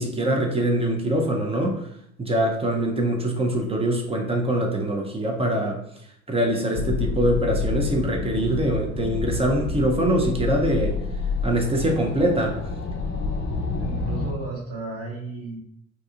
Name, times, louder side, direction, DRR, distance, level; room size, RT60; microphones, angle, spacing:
voice 1, 0.0-1.9 2.2-5.8 6.3-11.0 11.4-12.6, right 1 dB, 15° right, 1 dB, 0.5 m, -23 dB
sound 1, 6.7-14.3, left 4 dB, 30° left, 0.5 m, -28 dB
voice 2, 13.8-15.6, right 3 dB, 40° right, -3 dB, 1.0 m, -34 dB
2.6 x 2.3 x 2.7 m, 0.72 s
hypercardioid pair, 65°, 37 cm